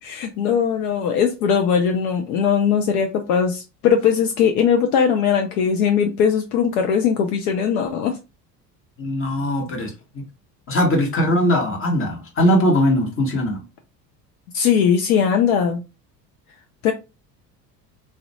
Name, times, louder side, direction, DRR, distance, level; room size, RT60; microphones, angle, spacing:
voice 1, 0.0-8.2 14.5-15.8 16.8-16.9, left 7 dB, 65° left, 0.5 m, -19 dB
voice 2, 9.0-10.2 10.7-13.6, equal, 25° left, 1.0 m, -20 dB
2.3 x 2.1 x 2.7 m
hypercardioid pair, 65°, 49 cm